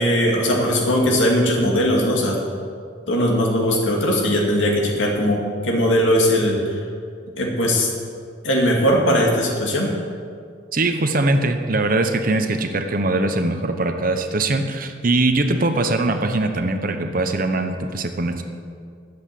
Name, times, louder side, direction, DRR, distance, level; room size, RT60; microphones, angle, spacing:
voice 1, 0.0-2.4 3.1-6.8 7.4-7.9 8.4-9.9, equal, 80° left, -1 dB, 2.3 m, -19 dB
voice 2, 10.7-18.4, right 2 dB, 45° right, 7 dB, 0.9 m, -21 dB
11.5 x 7.9 x 7.0 m, 2.2 s
head